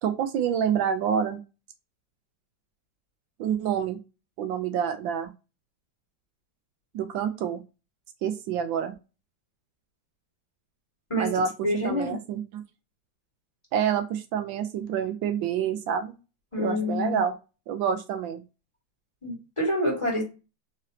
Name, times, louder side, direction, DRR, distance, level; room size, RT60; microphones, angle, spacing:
voice 1, 0.0-1.4 3.4-4.0 4.4-5.3 6.9-7.6 8.2-8.9 11.1-12.6 13.7-16.1 16.6-17.3 17.7-18.4, right 8 dB, 80° right, 1.3 m, -27 dB
voice 2, 11.1-12.2 16.5-17.2 19.2-20.2, left 1 dB, 15° left, 1.6 m, -27 dB
3.7 x 3.3 x 2.7 m
omnidirectional pair, 2.1 m